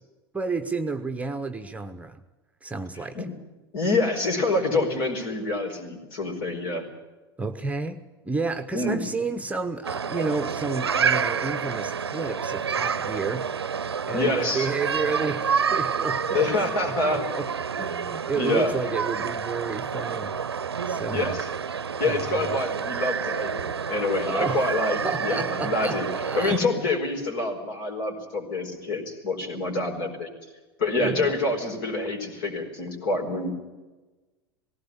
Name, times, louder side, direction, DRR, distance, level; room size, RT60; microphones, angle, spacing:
voice 1, 0.3-2.2 2.6-3.2 7.4-13.5 14.1-16.5 16.8-17.5 17.8-20.3 20.9-21.3 22.0-22.2 24.3-24.7 25.0-26.6 31.0-31.4, right 4 dB, 10° right, 7 dB, 0.9 m, -31 dB
voice 2, 3.7-6.9 8.7-9.0 14.1-14.7 16.3-17.2 18.3-18.7 21.1-21.5 22.0-26.1 26.3-30.3 30.8-33.5, left 2 dB, 60° left, 3 dB, 4.7 m, -26 dB
sound 1, 9.8-26.6, right 6 dB, 80° right, 0.7 m, -29 dB
18.5 x 16.5 x 8.8 m, 1.2 s
figure-of-eight pair, 85°, 13 cm